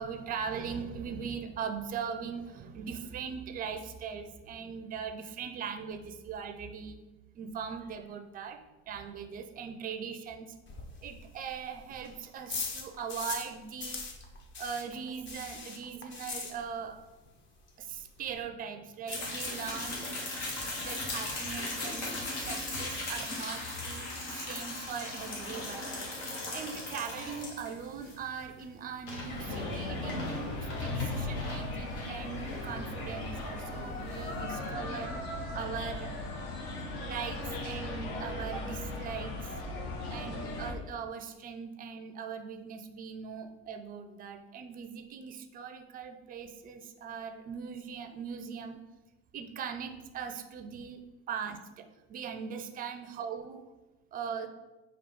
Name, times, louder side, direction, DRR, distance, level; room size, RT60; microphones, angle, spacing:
voice 1, 0.0-7.0 7.3-10.6 11.0-14.0 14.6-17.0 17.8-20.2 20.8-25.9 26.5-35.2 35.5-36.1 37.0-39.5 40.1-48.8 49.3-53.6 54.1-54.5, right 6 dB, 25° right, 7 dB, 0.4 m, -40 dB
sound 1, 10.7-13.5 13.8-17.0 17.3-17.4 17.7-17.8 18.0-18.4, left 4 dB, 35° left, 0.7 m, -40 dB
sound 2, 19.1-34.4, left 2 dB, 85° left, 1.2 m, -39 dB
sound 3, 29.3-40.7, left 2 dB, 65° left, 0.9 m, -37 dB
3.6 x 2.8 x 3.6 m, 1.1 s
hypercardioid pair, 80°, 34 cm